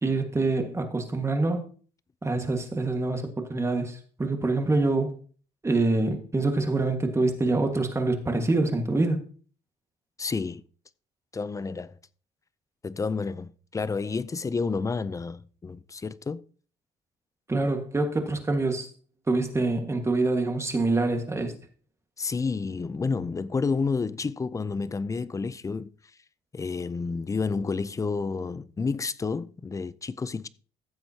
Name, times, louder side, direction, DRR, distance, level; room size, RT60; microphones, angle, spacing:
voice 1, 0.0-1.6 2.2-5.1 5.6-9.2 17.5-18.9 19.3-21.5, right 2 dB, 15° right, 1.6 m, -25 dB
voice 2, 10.2-10.6 11.3-12.0 12.8-16.4 22.2-25.9 26.5-30.5, left 4 dB, 20° left, 0.5 m, -30 dB
14.5 x 7.6 x 2.8 m
cardioid pair, 110°, 17 cm